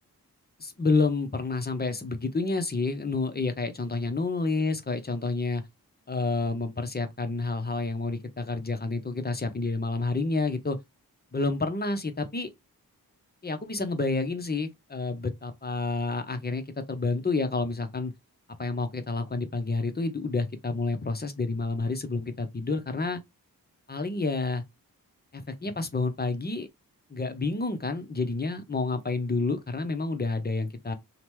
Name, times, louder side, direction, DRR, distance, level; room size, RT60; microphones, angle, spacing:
voice 1, 0.6-5.6 6.1-10.8 11.3-12.5 13.4-18.1 18.6-23.2 23.9-24.6 25.3-26.7 27.1-30.9, left 3 dB, 25° left, 0.7 m, -29 dB
2.9 x 2.2 x 3.1 m
cardioid pair, 50°, 37 cm